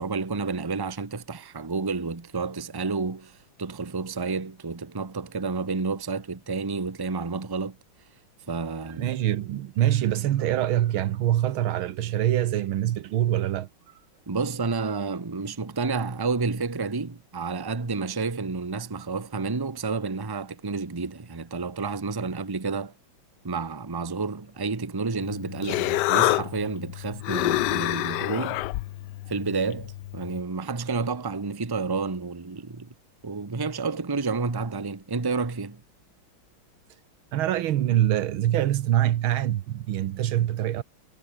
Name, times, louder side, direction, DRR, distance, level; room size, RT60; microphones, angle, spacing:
voice 1, 0.0-7.8 8.5-9.1 14.3-22.9 23.4-28.7 29.3-32.9 33.2-35.8, right 4 dB, 15° right, 1.0 m, -30 dB
voice 2, 9.0-13.7 37.3-40.8, right 12 dB, 80° right, 1.8 m, -24 dB
Human voice, 25.2-30.4, left 17 dB, 75° left, 1.0 m, -28 dB
omnidirectional pair, 2.2 m